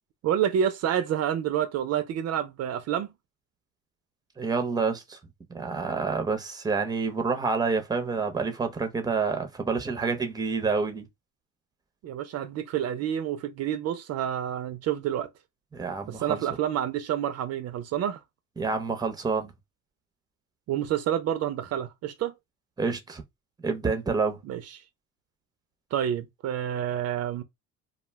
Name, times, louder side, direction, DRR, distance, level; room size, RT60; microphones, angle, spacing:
voice 1, 0.2-3.1 12.0-15.3 16.1-18.2 20.7-22.3 24.5-24.6 25.9-27.4, right 10 dB, 60° right, 0.5 m, -28 dB
voice 2, 4.4-5.2 5.5-11.1 15.7-16.4 18.6-19.5 22.8-23.2 23.6-24.4, right 4 dB, 15° right, 0.6 m, -28 dB
2.3 x 2.2 x 3.3 m
cardioid pair, 105°, 30 cm